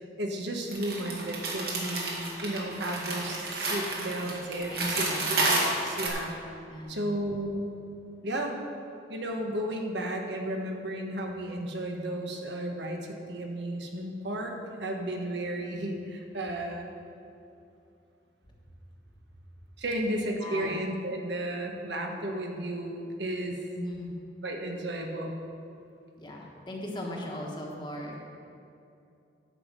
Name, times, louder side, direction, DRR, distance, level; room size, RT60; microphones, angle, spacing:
voice 1, 0.0-6.3 6.9-7.6 8.2-8.5 9.1-14.5 14.8-16.9 19.8-23.6 24.4-25.3, right 1 dB, 70° right, 2 dB, 1.2 m, -33 dB
sound 1, 0.7-6.1, right 2 dB, 55° right, 1.9 m, -30 dB
voice 2, 4.7-5.4 6.7-7.1 20.4-20.8 23.7-24.1 26.2-28.1, left 1 dB, 25° left, -1 dB, 1.3 m, -38 dB
10.5 x 5.4 x 7.5 m, 2.7 s
head